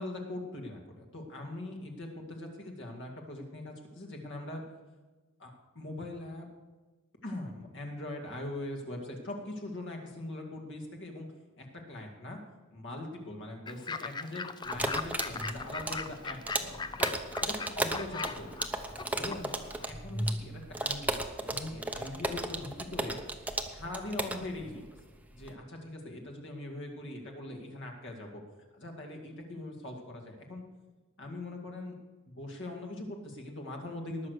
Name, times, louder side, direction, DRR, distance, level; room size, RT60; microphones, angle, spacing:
voice 1, 0.0-4.6 5.4-6.5 7.2-11.3 11.6-12.4 12.7-17.1 17.4-18.1 18.3-18.6 19.1-19.6 19.8-23.2 23.7-24.9 25.3-28.4 28.7-30.6 31.2-31.9 32.3-34.3, left 1 dB, 60° left, 2 dB, 2.2 m, -41 dB
Fowl / Bird, 13.7-19.9, left 4 dB, 20° left, 0.4 m, -40 dB
sound 1, 14.7-25.5, right 1 dB, 5° right, 0.8 m, -35 dB
19.5 x 6.6 x 6.5 m, 1.3 s
head